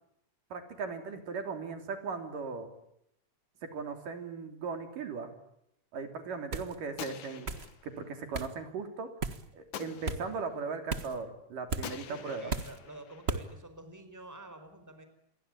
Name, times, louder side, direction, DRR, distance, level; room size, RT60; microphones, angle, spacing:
voice 1, 0.5-2.7 3.6-5.3 5.9-7.5 7.8-9.1 9.5-12.5, right 4 dB, 75° right, 7 dB, 4.9 m, -38 dB
sound 1, 6.5-6.8 7.5-7.7 8.3-8.5 9.2-9.4 10.1-10.2 10.9-11.2 11.7-11.9 12.5-12.8 13.3-13.5, right 4 dB, 45° right, 0.8 m, -34 dB
Gunshot gunfire, 7.0-8.1 9.7-10.5 11.8-13.5, left 9 dB, 65° left, 3.1 m, -46 dB
voice 2, 12.1-15.1, right 2 dB, 5° right, 9 dB, 4.4 m, -48 dB
28.0 x 23.0 x 8.7 m, 0.78 s
omnidirectional pair, 3.8 m